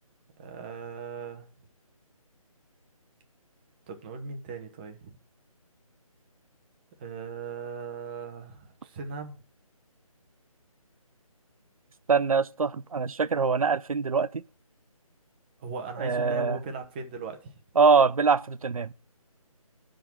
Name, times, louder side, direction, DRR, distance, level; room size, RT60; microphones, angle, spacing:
voice 1, 0.4-1.4 3.9-5.2 7.0-9.3 15.6-17.5, right 4 dB, 15° right, 0.9 m, -38 dB
voice 2, 12.1-14.4 16.0-16.6 17.8-18.9, right 5 dB, 70° right, 0.5 m, -23 dB
10.0 x 3.8 x 7.3 m
figure-of-eight pair, 155°, 19 cm